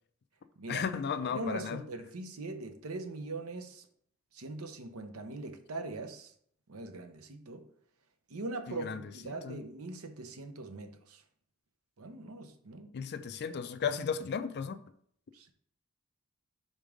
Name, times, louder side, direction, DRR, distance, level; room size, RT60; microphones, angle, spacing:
voice 1, 0.7-1.8 8.7-9.6 12.9-14.8, left 6 dB, 50° left, 0.4 m, -35 dB
voice 2, 1.3-3.9 4.3-6.3 6.7-7.6 8.3-11.2 12.0-12.9 15.3-15.5, right 2 dB, 75° right, 0.8 m, -41 dB
5.2 x 3.6 x 5.1 m
head